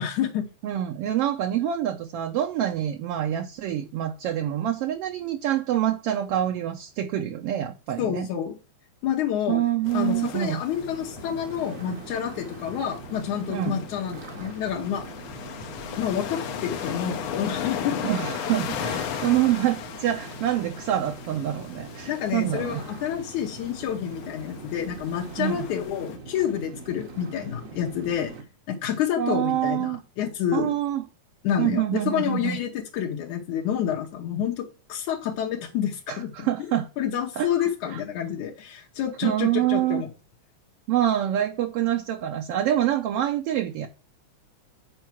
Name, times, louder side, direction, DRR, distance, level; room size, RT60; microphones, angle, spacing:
voice 1, 0.0-0.5 8.0-8.5 9.0-9.6 9.9-15.0 16.0-18.0 22.1-28.3 28.7-30.7 31.4-36.5 37.0-40.1, left 9 dB, 90° left, 2.6 m, -28 dB
voice 2, 0.6-8.3 9.5-10.6 13.5-13.8 18.0-22.8 25.4-25.7 29.2-30.0 30.5-31.1 31.6-32.6 36.1-36.9 37.4-38.0 39.2-40.0 40.9-43.9, right 11 dB, 70° right, 1.5 m, -26 dB
sound 1, 9.8-26.2, left 8 dB, 70° left, 1.2 m, -37 dB
sound 2, 10.7-28.4, right 4 dB, 55° right, 0.9 m, -42 dB
7.8 x 4.7 x 5.7 m
omnidirectional pair, 3.3 m